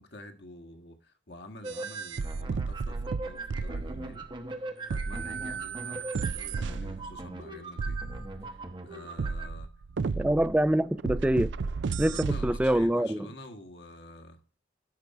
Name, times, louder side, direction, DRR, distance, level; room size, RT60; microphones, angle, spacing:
voice 1, 0.0-4.3 4.5-8.0 8.4-9.7 12.0-14.4, left 1 dB, 65° left, 1.5 m, -48 dB
sound 1, 1.6-9.5, right 2 dB, 25° right, 0.8 m, -41 dB
sound 2, 1.7-4.3 4.9-7.2 7.8-8.6 9.2-12.9, right 4 dB, 85° right, 0.5 m, -34 dB
voice 2, 10.2-11.5 12.0-13.3, right 1 dB, 5° right, 0.3 m, -25 dB
11.5 x 5.3 x 4.7 m
head